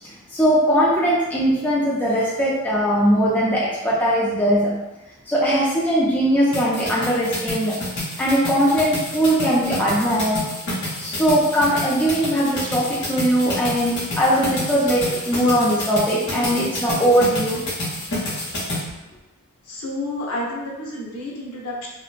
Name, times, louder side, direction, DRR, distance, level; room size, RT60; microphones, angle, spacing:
voice 1, 0.0-4.8 5.3-7.8 8.2-10.5 11.0-17.7, equal, 10° left, -6 dB, 0.3 m, -20 dB
sound 1, 6.5-18.8, left 1 dB, 55° left, 1.0 m, -29 dB
voice 2, 19.7-21.9, left 1 dB, 85° left, -4 dB, 0.7 m, -30 dB
2.9 x 2.0 x 2.4 m, 1.0 s
head